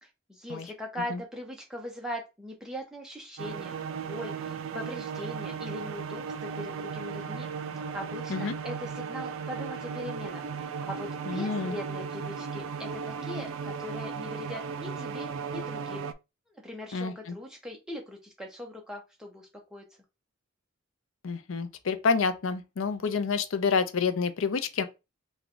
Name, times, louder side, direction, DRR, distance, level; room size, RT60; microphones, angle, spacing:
voice 1, 0.0-7.5 7.9-16.1 16.5-19.8, left 1 dB, 5° right, 0.8 m, -40 dB
sound 1, 3.4-16.1, right 6 dB, 75° right, 0.3 m, -36 dB
voice 2, 11.3-11.8 16.9-17.4 21.2-24.8, left 5 dB, 75° left, 0.5 m, -28 dB
3.5 x 2.3 x 3.7 m
head